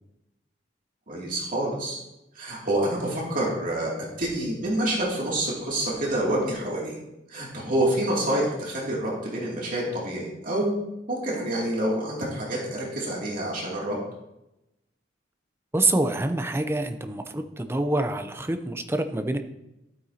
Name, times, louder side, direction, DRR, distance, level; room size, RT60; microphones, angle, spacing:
voice 1, 1.1-2.0 2.3-7.0 7.3-10.7 11.1-14.0, right 1 dB, 50° right, -4 dB, 2.7 m, -27 dB
voice 2, 15.7-19.4, right 2 dB, 15° right, 7 dB, 0.6 m, -26 dB
13.0 x 8.9 x 2.9 m, 0.90 s
head